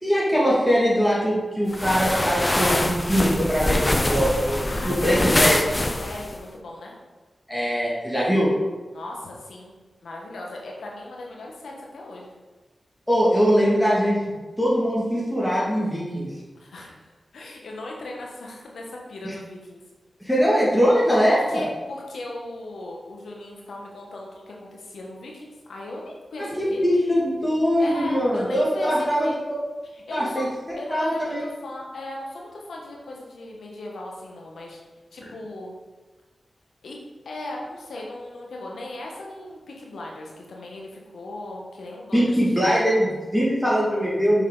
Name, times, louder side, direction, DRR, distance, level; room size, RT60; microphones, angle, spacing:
voice 1, 0.0-5.6 7.5-8.5 13.1-16.3 19.2-19.3 20.2-21.6 26.4-29.6 30.1-31.5 42.1-44.4, equal, 5° left, -6 dB, 2.2 m, -22 dB
sound 1, 1.7-6.4, left 1 dB, 30° left, 0.6 m, -24 dB
voice 2, 4.4-6.9 8.9-9.8 10.0-12.3 16.5-19.8 21.0-26.8 27.8-29.4 29.9-30.4 30.8-34.8 35.1-35.7 36.8-37.0 37.2-42.2, left 2 dB, 85° left, -2 dB, 1.3 m, -37 dB
6.6 x 4.6 x 3.9 m, 1.3 s
cardioid pair, 45°, 0 cm